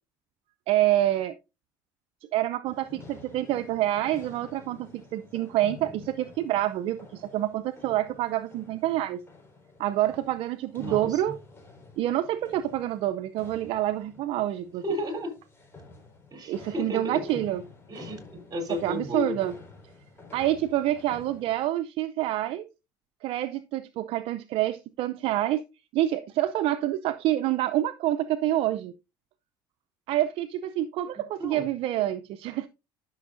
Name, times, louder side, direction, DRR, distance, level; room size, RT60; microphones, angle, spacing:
voice 1, 0.7-1.3 2.3-9.2 9.8-11.4 12.0-14.8 16.5-17.6 18.8-19.5 20.3-22.6 23.2-25.6 25.9-28.9 30.1-32.7, right 13 dB, 65° right, 0.5 m, -27 dB
sound 1, 2.6-21.6, left 3 dB, 20° left, 4.5 m, -50 dB
voice 2, 10.8-11.4 14.8-15.3 16.3-17.4 17.9-19.4 31.4-31.7, equal, 40° right, 3.5 m, -33 dB
12.0 x 6.3 x 2.6 m
supercardioid pair, 95°, 10 cm